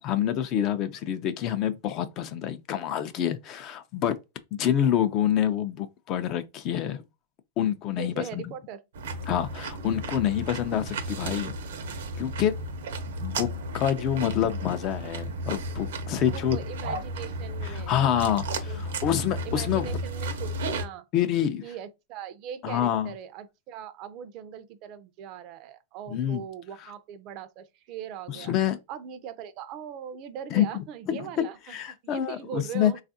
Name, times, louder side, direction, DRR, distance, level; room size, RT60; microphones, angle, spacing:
voice 1, 0.0-4.2 4.5-7.0 7.6-8.4 9.3-11.5 12.2-12.5 13.2-13.5 13.7-16.6 17.6-19.9 21.1-21.6 22.6-23.1 26.1-26.4 28.3-28.8 30.5-31.4 31.7-32.9, left 10 dB, 40° left, 0.4 m, -27 dB
voice 2, 8.0-8.8 16.3-18.9 19.4-21.1 21.6-28.5 28.9-31.8 32.0-33.0, right 8 dB, 45° right, 0.4 m, -40 dB
sound 1, 8.9-20.9, right 1 dB, 80° right, 0.7 m, -34 dB
3.3 x 2.4 x 2.6 m
hypercardioid pair, 130°, 0 cm